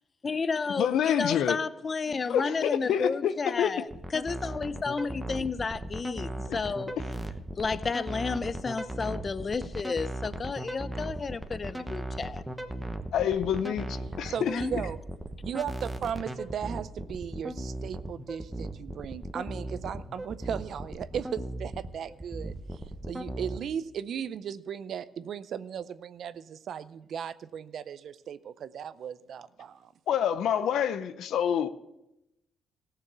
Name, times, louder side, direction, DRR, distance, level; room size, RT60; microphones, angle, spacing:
voice 1, 0.2-3.9 4.1-6.9 7.6-12.4 14.5-14.7, left 4 dB, 35° left, 0.6 m, -32 dB
voice 2, 0.8-1.6 2.3-3.7 6.5-6.6 13.1-14.8 30.1-31.7, left 9 dB, 75° left, 0.6 m, -27 dB
sound 1, 3.9-23.6, right 1 dB, 10° right, 1.1 m, -37 dB
voice 3, 14.3-15.0 15.4-22.5 23.1-29.9, right 8 dB, 65° right, 0.5 m, -36 dB
15.0 x 6.8 x 6.8 m
cardioid pair, 90°, 0 cm